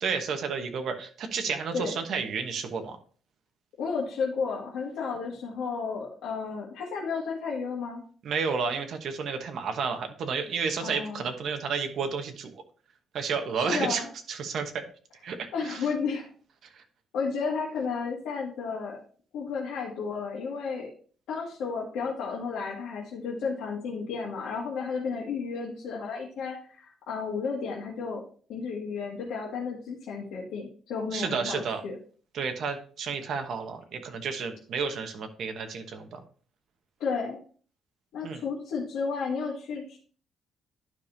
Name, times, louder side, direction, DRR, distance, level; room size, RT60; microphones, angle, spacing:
voice 1, 0.0-3.0 8.2-12.5 13.1-14.8 15.2-15.9 16.7-16.8 31.1-31.8 32.3-36.2 38.2-38.4, right 5 dB, 50° right, 6 dB, 1.1 m, -31 dB
voice 2, 3.8-8.0 10.8-11.3 13.5-14.1 15.5-16.3 17.1-19.0 19.3-20.9 21.3-28.2 28.5-32.0 37.0-37.4 38.1-40.0, left 5 dB, 90° left, -5 dB, 1.7 m, -32 dB
11.5 x 5.1 x 2.7 m, 0.43 s
cardioid pair, 175°, 0 cm